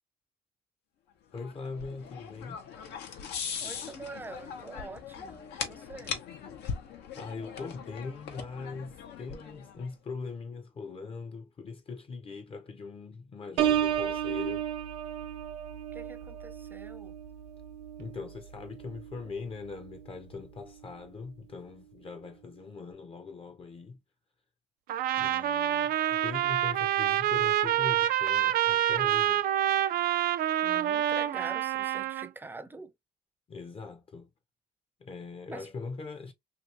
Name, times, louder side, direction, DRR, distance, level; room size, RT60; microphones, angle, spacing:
sound 1, 1.3-9.9, left 7 dB, 80° left, 0.9 m, -40 dB
voice 1, 1.3-2.6 7.2-14.7 18.0-24.0 25.2-29.5 33.5-34.3 35.0-36.3, left 4 dB, 35° left, 0.7 m, -41 dB
voice 2, 3.6-6.2 15.9-17.1 30.6-32.9 35.5-35.7, right 3 dB, 10° right, 0.5 m, -45 dB
Piano, 13.6-19.2 19.7-20.0, right 10 dB, 85° right, 0.8 m, -33 dB
Trumpet, 24.9-32.3, right 12 dB, 60° right, 0.4 m, -27 dB
2.8 x 2.7 x 2.9 m
cardioid pair, 110°, 17 cm